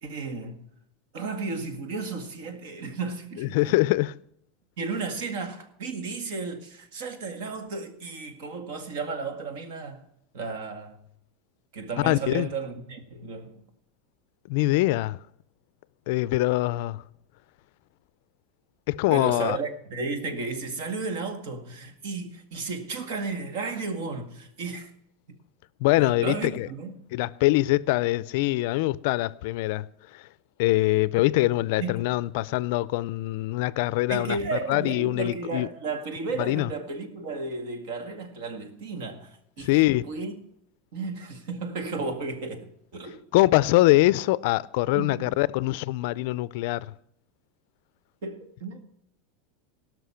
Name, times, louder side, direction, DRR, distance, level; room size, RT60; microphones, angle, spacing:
voice 1, 0.0-0.7 1.1-3.8 4.8-10.0 10.3-11.0 11.7-13.6 19.1-24.9 26.0-27.0 31.8-32.0 34.1-40.3 40.9-43.3 43.9-44.0 44.9-45.3 48.2-48.9, right 4 dB, 65° right, 1.9 m, -34 dB
voice 2, 3.4-4.2 12.0-12.5 14.5-15.2 16.1-17.0 18.9-19.6 25.8-26.7 27.1-29.9 30.1-30.2 30.6-34.4 34.7-35.7 36.4-36.7 39.6-40.0 43.3-46.9, left 18 dB, 60° left, 0.4 m, -23 dB
18.0 x 6.0 x 5.7 m
supercardioid pair, 165°, 0 cm